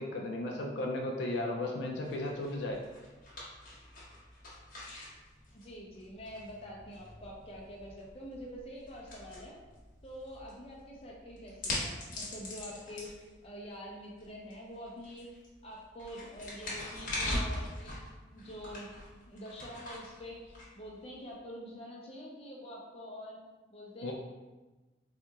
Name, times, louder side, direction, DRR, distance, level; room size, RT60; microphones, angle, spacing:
voice 1, 0.0-2.8 24.0-24.1, left 1 dB, 70° left, 0 dB, 0.4 m, -35 dB
sound 1, 2.0-21.3, left 1 dB, 45° left, 1.0 m, -43 dB
voice 2, 5.5-9.6 10.0-15.3 15.6-18.0 18.3-18.9 19.3-23.4 23.7-24.1, equal, 30° left, -3 dB, 0.6 m, -46 dB
4.1 x 2.7 x 2.4 m, 1.2 s
head